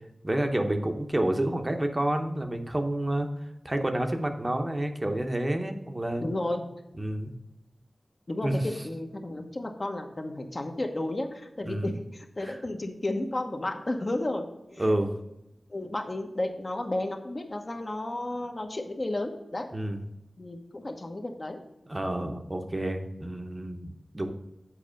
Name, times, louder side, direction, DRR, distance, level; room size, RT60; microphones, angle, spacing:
voice 1, 0.2-3.3 3.6-6.3 7.0-7.3 8.4-8.7 11.6-11.9 12.4-12.6 14.8-15.1 19.7-20.0 21.9-24.3, right 1 dB, 30° right, 4 dB, 0.8 m, -29 dB
voice 2, 6.2-6.6 8.3-14.9 15.7-19.7 20.4-21.6, left 1 dB, 45° left, 3 dB, 1.0 m, -33 dB
7.5 x 4.2 x 5.0 m, 0.90 s
cardioid pair, 45°, 0 cm